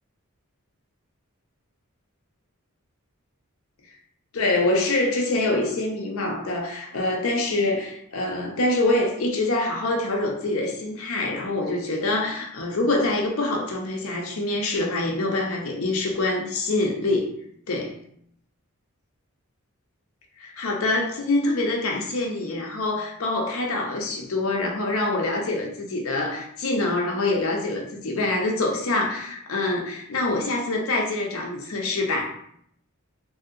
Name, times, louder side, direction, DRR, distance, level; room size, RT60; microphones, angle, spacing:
voice 1, 4.3-17.3 17.7-17.9 20.4-32.4, left 2 dB, 65° left, 1 dB, 0.6 m, -25 dB
3.1 x 2.7 x 2.5 m, 0.67 s
head